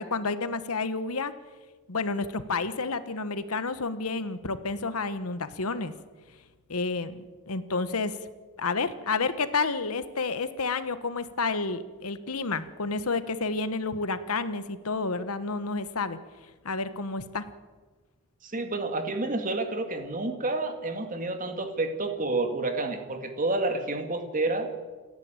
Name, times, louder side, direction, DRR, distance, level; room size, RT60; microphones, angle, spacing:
voice 1, 0.0-1.3 1.9-5.9 6.7-8.1 8.6-16.2 16.6-17.4, left 4 dB, 75° left, 12 dB, 1.2 m, -30 dB
voice 2, 18.4-24.7, right 2 dB, 35° right, 6 dB, 2.1 m, -29 dB
28.5 x 10.5 x 9.0 m, 1.4 s
head